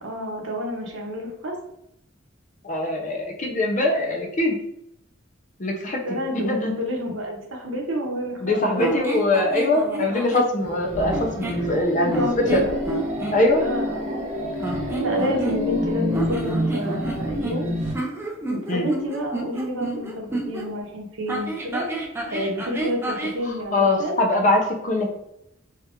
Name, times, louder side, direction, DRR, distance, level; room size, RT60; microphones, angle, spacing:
voice 1, 0.0-1.5 6.0-8.9 9.8-10.1 12.0-12.7 13.6-14.2 14.7-17.7 18.5-21.8 22.3-24.2, equal, 70° right, 0 dB, 0.8 m, -29 dB
voice 2, 2.6-4.6 5.6-6.7 8.4-12.2 12.5-12.6 13.3-13.6 18.7-18.9 23.7-25.1, left 2 dB, 40° left, 1 dB, 0.6 m, -22 dB
sound 1, 8.8-10.5 11.1-11.7 12.1-13.4 14.6-15.8 16.1-20.7 21.3-23.4, right 2 dB, 10° right, 0.4 m, -30 dB
sound 2, 10.6-17.9, equal, 35° right, 0.9 m, -28 dB
2.8 x 2.4 x 3.5 m, 0.79 s
head